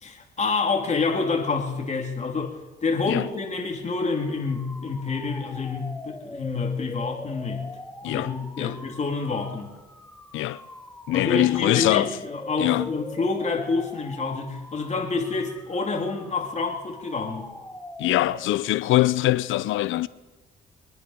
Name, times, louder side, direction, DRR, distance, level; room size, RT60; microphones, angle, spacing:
voice 1, 0.0-7.6 8.0-9.7 11.1-17.5, left 4 dB, 35° left, 3.3 m, -28 dB
sound 1, 4.1-18.8, left 1 dB, 5° left, 1.4 m, -42 dB
voice 2, 11.1-12.2 12.6-12.9 18.0-20.1, left 16 dB, 85° left, 0.6 m, -23 dB
24.0 x 10.0 x 5.2 m
cardioid pair, 90°, 20 cm